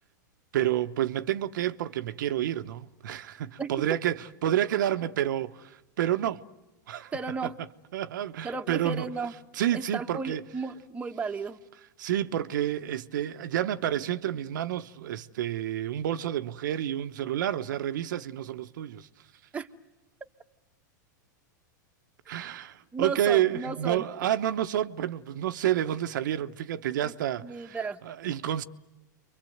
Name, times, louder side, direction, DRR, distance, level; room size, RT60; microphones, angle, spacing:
voice 1, 0.5-6.4 6.9-7.1 7.4-7.5 7.9-9.1 9.5-10.4 12.0-19.1 22.3-27.8 28.0-28.6, right 11 dB, 75° right, 1.0 m, -29 dB
voice 2, 7.1-7.5 8.4-9.3 9.7-11.6 19.5-19.7 22.9-24.3 27.0-27.1 27.4-28.0, right 4 dB, 10° right, 1.3 m, -34 dB
29.0 x 24.0 x 7.9 m
hypercardioid pair, 130°, 10 cm